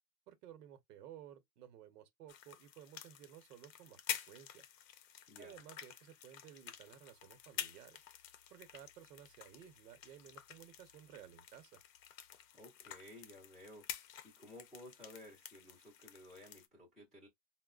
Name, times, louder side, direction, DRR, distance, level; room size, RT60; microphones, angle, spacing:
voice 1, 0.3-4.6 5.4-8.0 8.5-11.8, right 10 dB, 80° right, 0.9 m, -56 dB
sound 1, 2.3-16.7, left 10 dB, 55° left, 0.6 m, -49 dB
voice 2, 5.3-5.6 12.5-17.3, left 1 dB, ahead, 0.5 m, -56 dB
4.5 x 2.1 x 2.3 m
supercardioid pair, 175°, 47 cm